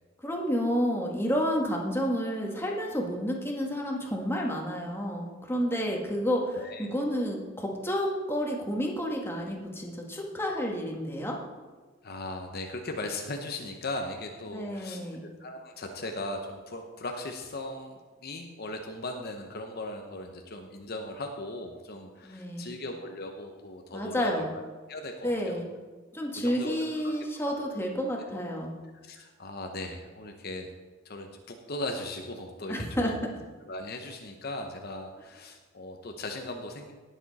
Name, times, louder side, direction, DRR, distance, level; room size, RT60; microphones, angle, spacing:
voice 1, 0.2-11.4 14.5-15.2 22.2-22.7 23.9-24.5 25.2-25.7 26.1-28.7 32.7-33.1, equal, 10° left, 0 dB, 1.7 m, -30 dB
voice 2, 6.6-6.9 12.0-24.6 24.9-25.6 26.3-26.8 27.0-27.1 28.2-28.3 29.0-30.7 31.0-33.3 33.7-36.9, left 2 dB, 55° left, 4 dB, 1.0 m, -38 dB
18.5 x 7.2 x 4.2 m, 1.3 s
head